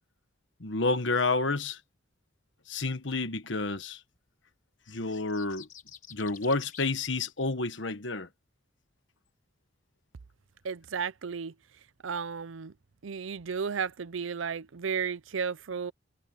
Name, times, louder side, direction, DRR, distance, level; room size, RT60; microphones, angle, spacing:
voice 1, 0.6-1.8 2.7-4.0 4.9-5.7 6.1-8.3, left 3 dB, 65° left, 1.4 m, -30 dB
sound 1, 4.9-7.0, left 9 dB, 45° left, 5.5 m, -49 dB
voice 2, 10.6-11.5 12.0-12.7 13.0-15.9, right 6 dB, 80° right, 0.6 m, -33 dB
head